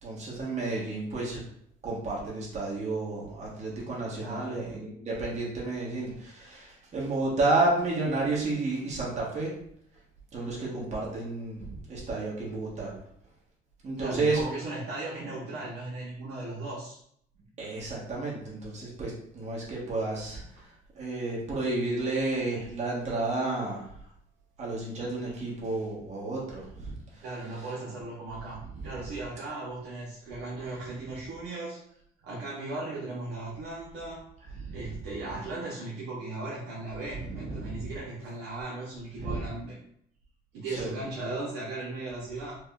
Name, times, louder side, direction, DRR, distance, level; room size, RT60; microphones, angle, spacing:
voice 1, 0.0-1.4 1.8-9.5 10.3-12.9 13.8-14.4 17.6-23.9 24.6-27.2 28.7-29.0 30.6-30.8 34.6-34.8 37.2-37.9 39.2-39.5 40.7-40.9, right 2 dB, 40° right, -4 dB, 1.4 m, -31 dB
voice 2, 4.1-4.7 14.0-17.0 17.4-17.5 27.2-31.8 32.2-34.2 34.7-39.8 40.5-42.6, right 2 dB, 75° right, -6 dB, 1.0 m, -37 dB
4.8 x 2.3 x 2.5 m, 0.68 s
cardioid pair, 110°, 17 cm